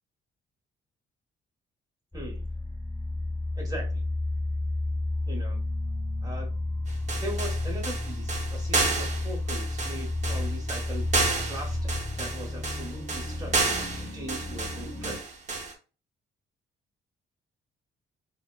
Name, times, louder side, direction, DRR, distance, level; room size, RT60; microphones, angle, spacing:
sound 1, 2.1-15.2, left 2 dB, 10° left, 1.1 m, -32 dB
voice 1, 2.1-2.4 3.6-4.0 5.3-5.6 6.2-6.5 7.1-11.1 11.5-15.2, right 1 dB, 20° right, 0 dB, 1.2 m, -40 dB
sound 2, 6.9-15.7, right 3 dB, 35° right, 0.7 m, -31 dB
4.0 x 2.1 x 2.3 m, 0.34 s
cardioid pair, 100°, 21 cm